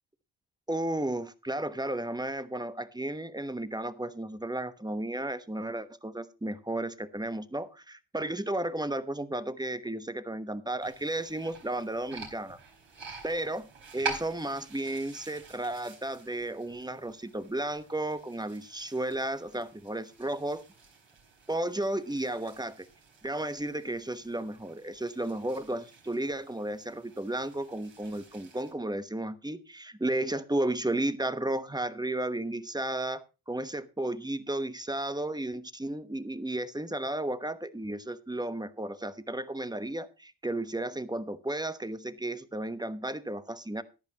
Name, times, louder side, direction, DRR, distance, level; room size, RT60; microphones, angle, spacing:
voice 1, 0.7-12.6 13.2-13.7 13.9-20.6 21.5-22.9 23.2-43.8, right 1 dB, 10° right, 12 dB, 1.1 m, -33 dB
sound 1, 10.8-28.7, right 4 dB, 65° right, 4.7 m, -46 dB
14.5 x 10.5 x 3.0 m, 0.30 s
supercardioid pair, 50°, 47 cm